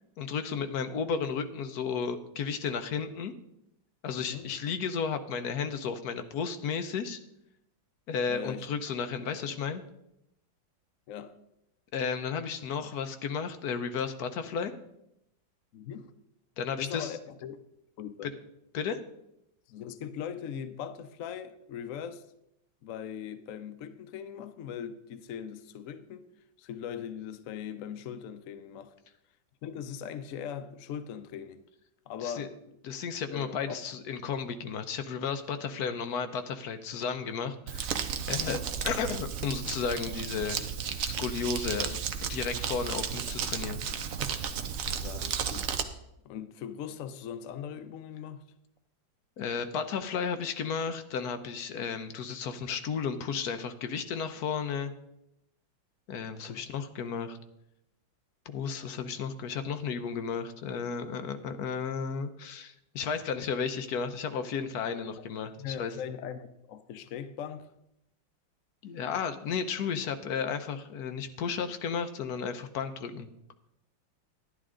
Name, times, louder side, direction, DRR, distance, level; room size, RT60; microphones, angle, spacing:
voice 1, 0.2-3.3 4.0-7.2 8.1-9.8 11.9-14.7 16.6-17.1 18.2-18.3 18.7-19.0 32.2-32.5 32.8-38.0 38.3-40.6 41.0-42.0 42.3-43.8 49.4-54.9 56.1-57.4 58.5-66.0 68.8-73.3, left 6 dB, 65° left, 1.1 m, -33 dB
voice 2, 4.2-4.6 8.3-8.7 11.1-11.3 15.7-16.1 16.8-17.6 18.0-18.3 19.7-22.3 22.8-26.3 26.6-28.9 29.6-31.6 32.1-32.6 33.3-33.8 38.4-38.6 45.0-45.7 46.2-48.4 56.5-56.6 65.6-67.7, left 8 dB, 85° left, 0.7 m, -40 dB
Crumpling crinkling, 37.7-45.8, right 7 dB, 60° right, 0.9 m, -33 dB
11.0 x 10.5 x 3.8 m
omnidirectional pair, 2.1 m